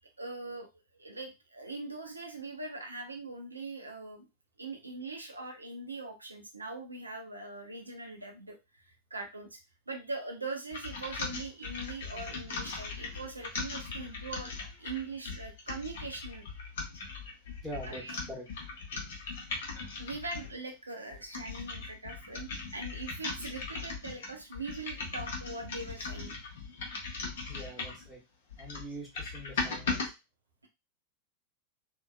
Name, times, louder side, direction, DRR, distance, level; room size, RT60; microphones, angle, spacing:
voice 1, 0.2-0.7 0.9-4.3 4.6-8.6 8.8-9.6 9.9-16.4 17.8-18.1 20.0-26.4, right 3 dB, 80° right, 3 dB, 0.5 m, -41 dB
sound 1, 10.7-20.6 21.1-28.1 28.5-30.1, left 4 dB, 60° left, 0.7 m, -39 dB
voice 2, 17.6-18.5 27.4-28.2 28.6-30.1, right 1 dB, 5° left, -5 dB, 1.1 m, -44 dB
2.7 x 2.2 x 2.3 m, 0.25 s
figure-of-eight pair, 90°, 0 cm